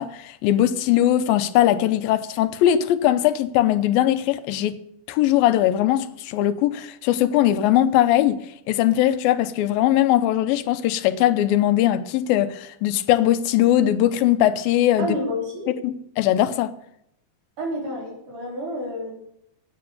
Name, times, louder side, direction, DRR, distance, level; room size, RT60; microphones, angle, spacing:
voice 1, 0.0-4.8 5.1-15.2 15.8-16.7, left 12 dB, 90° left, 2.5 m, -20 dB
voice 2, 15.0-15.7 17.6-19.1, equal, 60° right, 5.5 m, -29 dB
13.5 x 8.7 x 7.1 m
omnidirectional pair, 4.0 m